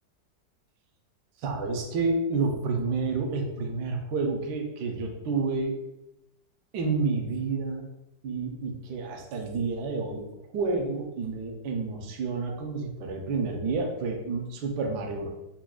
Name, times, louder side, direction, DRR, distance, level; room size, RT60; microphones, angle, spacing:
voice 1, 1.4-5.8 6.7-7.9 8.2-10.3 10.5-15.3, right 4 dB, 70° right, 2 dB, 1.1 m, -29 dB
5.9 x 2.0 x 2.3 m, 0.93 s
omnidirectional pair, 2.0 m